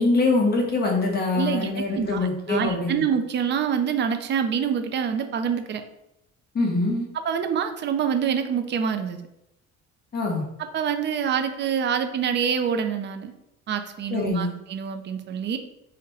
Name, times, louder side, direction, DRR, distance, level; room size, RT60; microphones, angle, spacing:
voice 1, 0.0-3.0 6.5-7.0 10.1-10.4 14.1-14.5, left 3 dB, 35° left, 0 dB, 1.0 m, -23 dB
voice 2, 1.3-5.8 7.1-9.2 10.7-13.3 13.7-15.6, right 7 dB, 40° right, 7 dB, 0.4 m, -26 dB
3.8 x 2.1 x 4.1 m, 0.84 s
cardioid pair, 125°, 30 cm